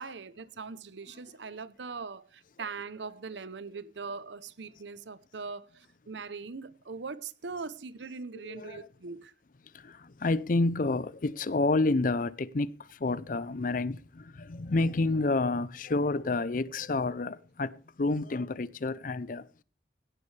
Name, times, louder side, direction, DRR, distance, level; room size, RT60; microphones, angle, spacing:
voice 1, 0.0-9.3, right 4 dB, 80° right, 0.8 m, -41 dB
voice 2, 8.5-8.8 9.7-19.5, left 2 dB, 50° left, 0.5 m, -29 dB
16.5 x 12.0 x 3.3 m
head